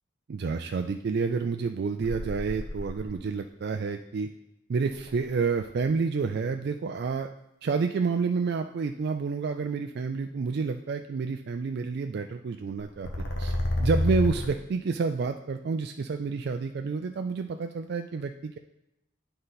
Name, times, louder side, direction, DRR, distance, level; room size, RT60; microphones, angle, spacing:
voice 1, 0.3-4.3 4.7-7.3 7.6-13.1 13.4-13.5 13.8-18.6, right 4 dB, 50° right, 6 dB, 0.3 m, -29 dB
sound 1, 2.0-3.2 4.9-5.8 12.8-14.5, left 1 dB, 55° left, 1.0 m, -29 dB
9.6 x 3.9 x 4.0 m, 0.88 s
head